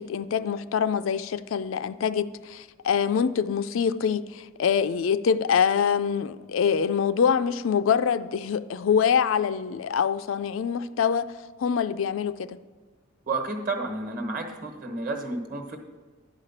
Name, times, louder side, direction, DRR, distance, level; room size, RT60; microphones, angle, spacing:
voice 1, 0.0-11.3 11.6-12.6, left 7 dB, 80° left, 0.4 m, -25 dB
voice 2, 13.3-15.8, right 3 dB, 45° right, 1.2 m, -31 dB
10.5 x 4.9 x 7.2 m
head